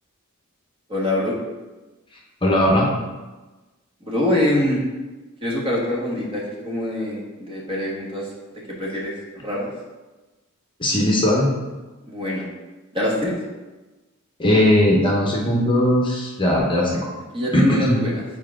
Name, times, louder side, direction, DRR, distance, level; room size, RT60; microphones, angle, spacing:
voice 1, 0.9-1.4 4.0-4.8 5.4-8.3 8.7-9.2 9.4-9.7 12.0-12.5 12.9-13.3 17.3-18.2, left 1 dB, 25° right, -4 dB, 1.5 m, -24 dB
voice 2, 2.4-2.8 10.8-11.5 14.4-17.0 17.5-18.0, left 1 dB, 20° left, -3 dB, 1.0 m, -18 dB
7.4 x 4.7 x 3.7 m, 1.2 s
head